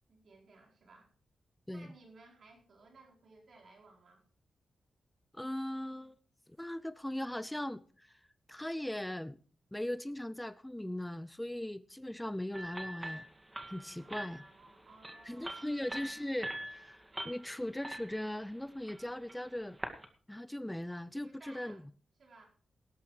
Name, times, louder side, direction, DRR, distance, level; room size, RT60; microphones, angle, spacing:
voice 1, 0.1-1.1 1.7-4.2 14.0-15.8 21.2-21.8 22.2-22.5, right 3 dB, 65° right, 4.5 m, -59 dB
voice 2, 5.3-6.2 6.6-8.2 8.5-9.4 9.7-13.3 13.7-14.4 15.3-19.8 20.3-21.8, left 1 dB, 10° left, 0.5 m, -39 dB
sound 1, 12.5-20.1, right 1 dB, 20° right, 1.9 m, -45 dB
18.5 x 11.0 x 3.2 m
cardioid pair, 80°, 0 cm